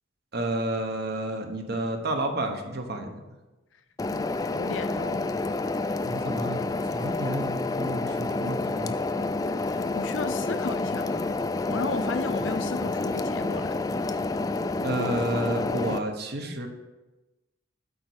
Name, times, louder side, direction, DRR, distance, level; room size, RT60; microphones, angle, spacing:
voice 1, 0.3-3.1 6.1-9.0 14.8-16.7, right 1 dB, 55° right, 4 dB, 1.0 m, -30 dB
sound 1, 4.0-16.0, left 3 dB, 20° left, 0.3 m, -29 dB
voice 2, 4.5-5.3 9.4-11.3 11.7-13.8, left 4 dB, 80° left, 10 dB, 0.6 m, -34 dB
8.6 x 4.2 x 6.4 m, 1.1 s
head